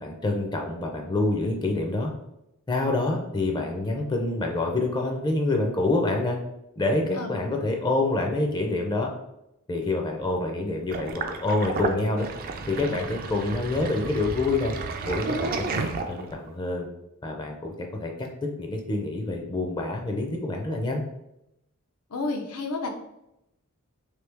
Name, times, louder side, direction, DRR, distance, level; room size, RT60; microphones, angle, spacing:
voice 1, 0.0-2.1 2.7-6.4 6.8-9.1 9.7-12.3 12.7-14.7 15.1-16.9 17.2-21.0, left 2 dB, 20° left, 2 dB, 0.4 m, -27 dB
voice 2, 7.2-7.6 22.1-22.9, left 3 dB, 85° left, 3 dB, 0.6 m, -31 dB
Sink (filling or washing), 10.9-16.5, right 4 dB, 40° right, 0.4 m, -32 dB
3.2 x 2.7 x 3.3 m, 0.85 s
head